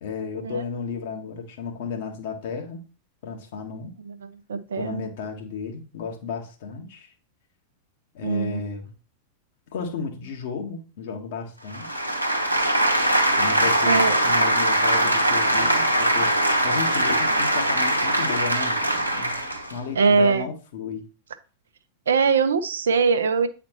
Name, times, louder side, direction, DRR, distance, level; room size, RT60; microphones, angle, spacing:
voice 1, 0.0-2.9 3.2-4.0 4.7-7.1 8.1-8.9 9.7-12.1 13.4-16.3 16.6-19.4 19.7-21.1, left 5 dB, 55° left, 1.3 m, -33 dB
voice 2, 4.5-5.0 8.2-8.6 13.9-14.2 20.0-20.5 22.1-23.5, right 5 dB, 65° right, 0.6 m, -21 dB
sound 1, 11.7-19.7, right 1 dB, 90° right, 1.0 m, -21 dB
8.5 x 4.1 x 3.0 m
figure-of-eight pair, 90°, 0 cm